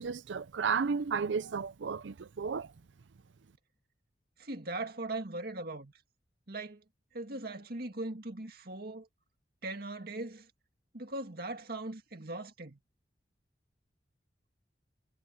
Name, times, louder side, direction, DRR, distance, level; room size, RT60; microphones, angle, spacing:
voice 1, 0.0-2.7, right 5 dB, 80° right, 0.5 m, -33 dB
voice 2, 4.4-5.9 6.5-6.8 7.1-9.1 9.6-10.5 10.9-12.8, right 2 dB, 55° right, 2.1 m, -39 dB
head